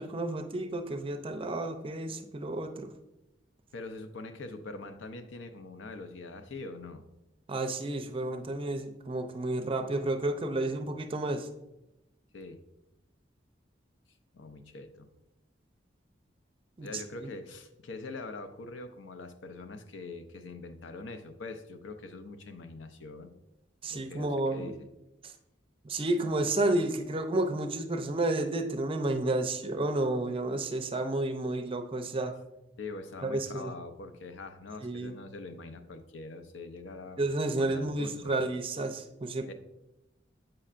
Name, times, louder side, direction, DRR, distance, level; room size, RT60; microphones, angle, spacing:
voice 1, 0.0-2.9 7.5-11.5 16.8-17.0 23.8-24.7 25.8-32.3 33.2-33.7 34.8-35.1 37.2-39.5, right 2 dB, 30° right, 7 dB, 0.5 m, -31 dB
voice 2, 3.7-7.0 12.3-12.6 14.3-15.1 16.8-23.3 23.9-24.9 32.8-37.2 37.5-38.4 39.5-39.6, left 3 dB, 80° left, 9 dB, 0.6 m, -43 dB
7.7 x 5.4 x 2.5 m, 0.94 s
head